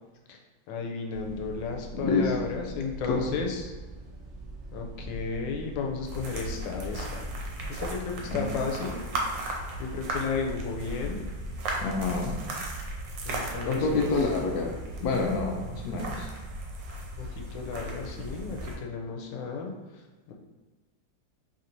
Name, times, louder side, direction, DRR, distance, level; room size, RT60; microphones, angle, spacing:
voice 1, 0.7-3.7 4.7-7.2 7.7-9.1 9.4-11.2 13.2-14.2 17.2-19.7 20.3-20.4, left 5 dB, 90° left, 2 dB, 1.4 m, -34 dB
sound 1, 1.1-8.4, right 1 dB, 55° right, 0.8 m, -43 dB
voice 2, 1.9-2.3 3.1-3.2 8.3-8.5 11.8-12.4 13.6-16.3, left 3 dB, 75° left, 2 dB, 0.9 m, -28 dB
sound 2, 6.0-18.8, right 1 dB, 75° right, 1.4 m, -36 dB
4.3 x 3.3 x 2.6 m, 1.3 s
omnidirectional pair, 2.0 m